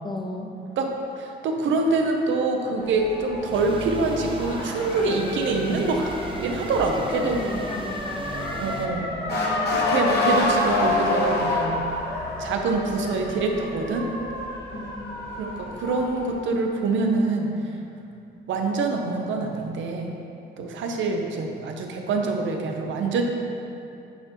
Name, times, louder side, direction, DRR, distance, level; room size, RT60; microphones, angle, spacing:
voice 1, 0.0-0.5 6.9-8.3 9.0-9.1 14.7-15.4, left 2 dB, 20° left, 3 dB, 0.6 m, -35 dB
voice 2, 1.2-6.1 6.4-7.4 8.6-9.1 9.7-11.7 12.4-14.1 15.4-17.7 18.5-20.1 20.6-23.2, right 3 dB, 75° right, 2 dB, 0.7 m, -25 dB
Motor vehicle (road) / Siren, 2.8-16.3, left 2 dB, 55° left, 1.2 m, -28 dB
sound 1, 3.5-8.9, right 2 dB, 25° right, 0.6 m, -36 dB
8.7 x 4.5 x 3.0 m, 2.7 s
cardioid pair, 90°, 20 cm